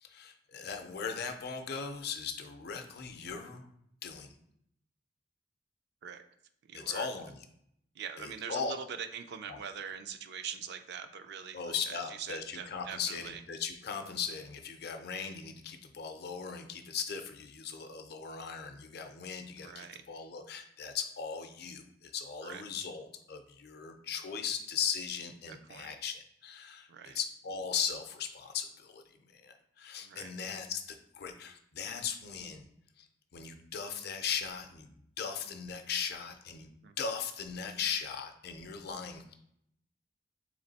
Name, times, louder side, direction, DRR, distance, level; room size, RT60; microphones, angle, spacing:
voice 1, 0.0-3.7 4.0-4.4 6.7-7.4 8.2-8.8 9.5-9.6 11.5-32.7 33.0-34.9 35.2-36.7 37.0-39.3, left 6 dB, 60° left, 6 dB, 0.5 m, -38 dB
voice 2, 6.6-7.1 8.0-13.4 19.6-20.0 22.4-22.6 25.5-26.0 26.9-27.2 30.0-30.4 36.8-36.9, right 7 dB, 60° right, 9 dB, 0.4 m, -43 dB
3.5 x 3.1 x 4.0 m, 0.74 s
head